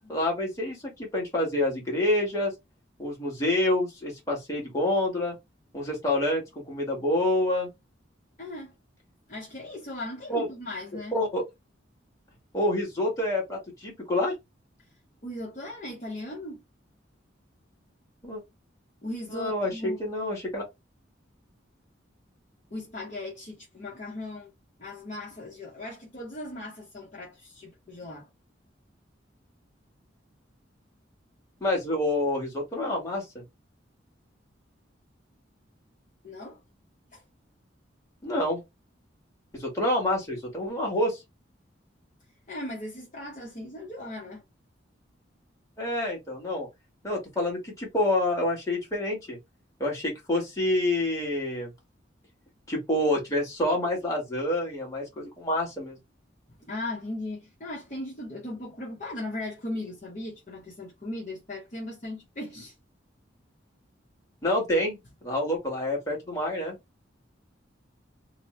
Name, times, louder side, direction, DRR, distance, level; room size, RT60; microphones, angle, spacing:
voice 1, 0.1-2.5 3.0-5.3 5.7-7.7 10.3-10.5 11.1-11.4 12.5-14.3 18.2-18.4 19.3-20.6 31.6-33.4 38.2-38.6 39.5-41.2 45.8-46.7 47.0-49.4 49.8-51.7 52.7-56.0 64.4-66.8, left 1 dB, 15° left, 1.5 m, -27 dB
voice 2, 8.4-8.7 9.3-11.2 15.2-16.6 19.0-20.0 22.7-24.5 24.8-28.3 36.2-36.6 37.1-37.2 42.5-44.4 56.7-62.7, left 1 dB, 40° left, 0.9 m, -38 dB
3.0 x 2.1 x 3.0 m
head